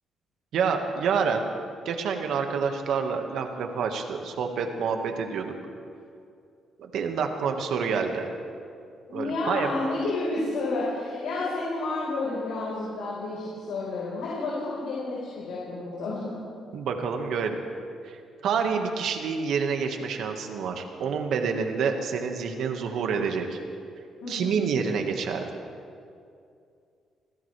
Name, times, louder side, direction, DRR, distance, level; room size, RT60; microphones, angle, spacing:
voice 1, 0.5-1.4 1.8-5.5 6.8-8.3 9.1-9.7 16.7-17.6 18.0-23.6 24.3-25.4, right 6 dB, 75° right, 4 dB, 1.7 m, -28 dB
voice 2, 9.1-16.3 24.2-24.6, left 2 dB, 85° left, -6 dB, 4.5 m, -30 dB
26.5 x 16.0 x 3.4 m, 2.4 s
cardioid pair, 90°, 0 cm